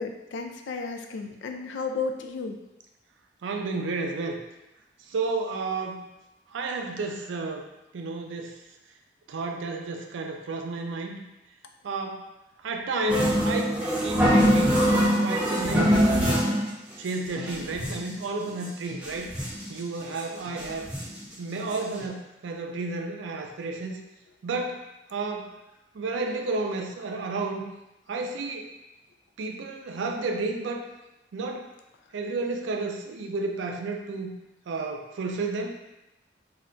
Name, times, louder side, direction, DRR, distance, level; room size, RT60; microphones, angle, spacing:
voice 1, 0.0-2.6, left 4 dB, 80° left, 4 dB, 0.3 m, -33 dB
voice 2, 3.4-4.4 5.1-6.1 6.5-7.6 7.9-8.6 9.3-11.2 11.8-12.2 12.6-16.5 17.0-19.3 19.7-20.9 21.4-24.0 24.4-24.8 25.1-25.5 25.9-27.7 28.1-28.7 29.4-30.8 31.3-31.7 32.1-34.3 34.7-35.8, right 3 dB, 90° right, 3 dB, 0.4 m, -31 dB
sound 1, 13.1-16.7 17.1-17.2 17.4-18.1 18.6-18.7 18.9-19.7 20.2-20.3 20.6-21.2 21.7-21.8 22.0-22.1, equal, 5° right, 0.4 m, -23 dB
2.4 x 2.1 x 3.7 m, 0.96 s
head